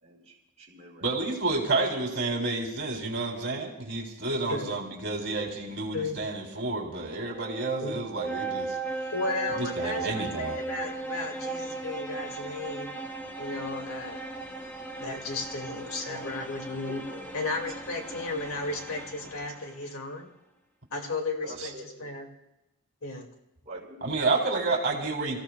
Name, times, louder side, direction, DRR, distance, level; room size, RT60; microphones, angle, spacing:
voice 1, 0.0-1.1 15.7-16.4 16.8-17.3 18.1-18.2 21.4-22.0 23.7-24.7 25.2-25.4, right 1 dB, 30° right, -4 dB, 5.7 m, -43 dB
voice 2, 1.0-8.8 9.5-10.6 24.0-25.4, right 3 dB, 55° right, -1 dB, 3.5 m, -30 dB
sound 1, 7.1-19.9, right 3 dB, 10° left, 1.1 m, -37 dB
voice 3, 9.1-12.9 13.4-14.2 15.0-17.0 17.3-20.3 20.9-22.3 23.0-23.3, left 3 dB, 70° left, 3 dB, 2.4 m, -34 dB
29.0 x 15.5 x 2.4 m, 0.93 s
head